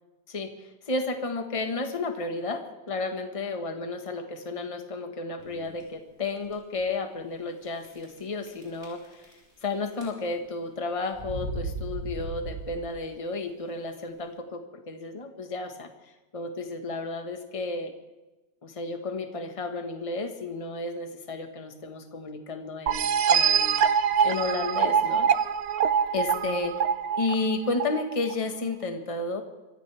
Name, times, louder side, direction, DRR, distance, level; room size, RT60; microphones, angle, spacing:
voice 1, 0.3-9.3 9.6-15.9 16.3-17.9 18.6-23.8 24.2-25.3 26.1-26.7 27.2-29.4, left 3 dB, 20° left, 5 dB, 1.3 m, -32 dB
sound 1, 5.4-5.8 6.4-6.5 6.8-6.9 7.8-8.2 8.5-9.6 9.9-10.5 11.1-13.1, right 2 dB, 20° right, 6.0 m, -36 dB
sound 2, 22.9-28.3, right 7 dB, 65° right, 0.9 m, -24 dB
25.5 x 15.0 x 3.5 m, 1.1 s
omnidirectional pair, 2.4 m